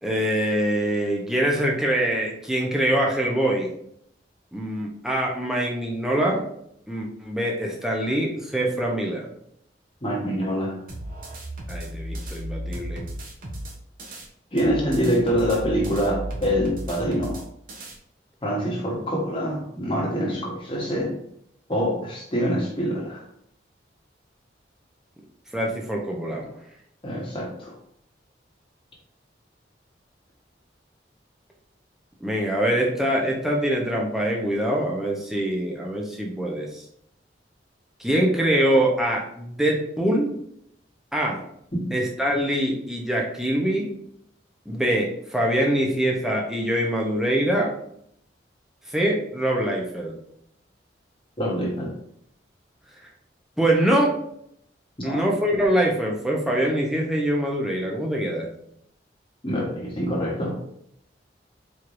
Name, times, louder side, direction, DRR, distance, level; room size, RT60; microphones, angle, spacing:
voice 1, 0.0-3.7 4.5-6.4 6.9-9.3 11.7-13.0 25.5-26.5 32.2-36.8 38.0-40.3 41.1-41.4 41.9-43.9 44.7-47.7 48.9-50.1 53.6-54.1 55.0-58.5, right 1 dB, ahead, -2 dB, 0.7 m, -24 dB
voice 2, 10.0-10.8 14.5-17.4 18.4-21.1 21.7-23.2 27.0-27.7 51.4-51.9 55.0-55.2 59.4-60.6, equal, 30° left, -3 dB, 1.0 m, -25 dB
sound 1, 10.9-14.3 14.6-18.0, right 1 dB, 50° right, 0.8 m, -35 dB
4.4 x 3.2 x 2.5 m, 0.71 s
head